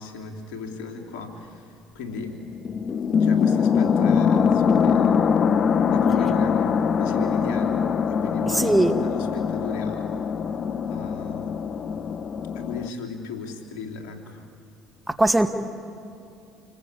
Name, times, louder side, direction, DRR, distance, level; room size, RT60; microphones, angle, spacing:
voice 1, 0.0-2.4 3.2-5.2 5.9-10.1 10.9-11.6 12.5-14.4, left 4 dB, 75° left, 3 dB, 3.3 m, -36 dB
sound 1, 2.1-2.2 2.4-12.9, left 6 dB, 45° left, 0.9 m, -22 dB
voice 2, 8.5-9.0 15.1-15.5, right 1 dB, 10° right, 7 dB, 1.9 m, -20 dB
28.0 x 20.5 x 8.5 m, 2.6 s
hypercardioid pair, 70°, 0 cm